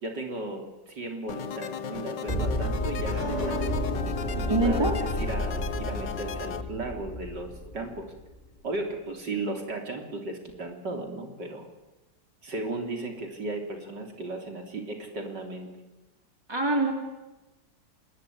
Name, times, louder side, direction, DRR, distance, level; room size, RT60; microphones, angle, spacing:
voice 1, 0.0-3.8 4.4-8.1 8.6-11.7 12.4-15.7, right 2 dB, 65° right, 3 dB, 4.3 m, -35 dB
sound 1, 1.3-6.6, left 8 dB, 70° left, 1.8 m, -36 dB
sound 2, 2.3-8.3, equal, 20° left, 5.8 m, -31 dB
voice 2, 4.5-5.0 16.5-16.9, right 2 dB, 10° right, 3 dB, 3.7 m, -24 dB
27.0 x 21.0 x 9.6 m, 1.1 s
omnidirectional pair, 2.1 m